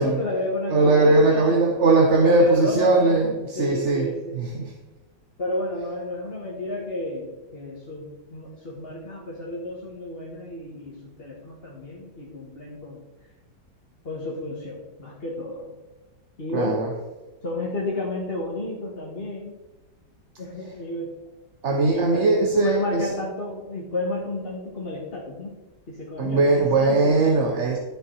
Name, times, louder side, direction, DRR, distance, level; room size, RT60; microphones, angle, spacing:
voice 1, 0.0-1.7 2.2-3.3 3.6-4.4 5.4-13.0 14.0-15.8 16.4-16.8 17.4-19.6 20.4-21.1 21.9-25.6 25.9-27.2, left 1 dB, 30° left, -5 dB, 1.7 m, -31 dB
voice 2, 0.7-4.1 4.3-4.7 16.5-16.9 21.6-23.1 26.2-27.8, right 3 dB, 45° right, 1 dB, 1.3 m, -20 dB
13.5 x 7.0 x 4.6 m, 1.1 s
omnidirectional pair, 2.0 m